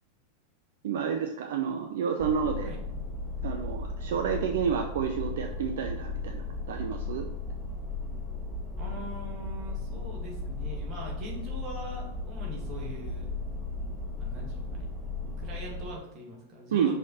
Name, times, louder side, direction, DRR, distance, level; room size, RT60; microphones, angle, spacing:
voice 1, 0.8-2.7 3.4-7.2 16.7-17.0, right 7 dB, 60° right, 4 dB, 0.6 m, -30 dB
sound 1, 2.2-15.9, left 3 dB, ahead, 1.9 m, -36 dB
voice 2, 8.8-13.3 14.2-14.9 15.4-17.0, equal, 35° right, -1 dB, 2.4 m, -42 dB
6.2 x 5.2 x 4.2 m, 0.89 s
figure-of-eight pair, 90°, 0 cm